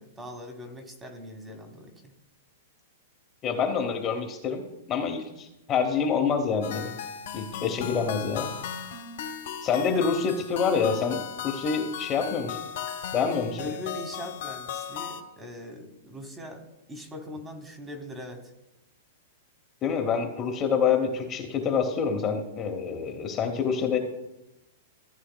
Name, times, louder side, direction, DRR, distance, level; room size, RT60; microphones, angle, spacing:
voice 1, 0.0-2.1 9.8-10.1 13.6-16.6 16.9-18.5, left 1 dB, 10° right, 5 dB, 1.1 m, -41 dB
voice 2, 3.4-4.6 4.9-6.9 7.3-8.5 9.6-12.6 13.1-13.6 19.8-24.0, left 6 dB, 20° left, 3 dB, 0.9 m, -27 dB
sound 1, 6.6-15.2, left 8 dB, 65° left, 1.2 m, -37 dB
15.0 x 9.0 x 2.2 m, 0.91 s
supercardioid pair, 160°, 0 cm